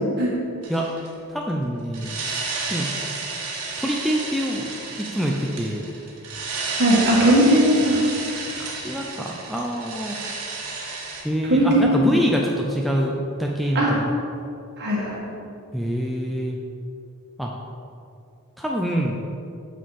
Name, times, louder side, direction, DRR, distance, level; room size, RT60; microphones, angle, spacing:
sound 1, 0.6-1.1 1.9-11.2, right 3 dB, 75° right, 1.4 m, -32 dB
voice 1, 1.3-2.4 2.7-3.1 3.8-4.7 5.0-5.8 8.6-10.2 11.2-13.1 13.4-14.1 15.7-16.6 17.4-17.5 18.6-19.2, equal, ahead, -2 dB, 0.4 m, -25 dB
voice 2, 6.8-8.0 11.5-12.2 13.8-13.9 14.8-15.2, right 1 dB, 50° right, -4 dB, 1.8 m, -18 dB
6.9 x 6.2 x 4.2 m, 2.6 s
head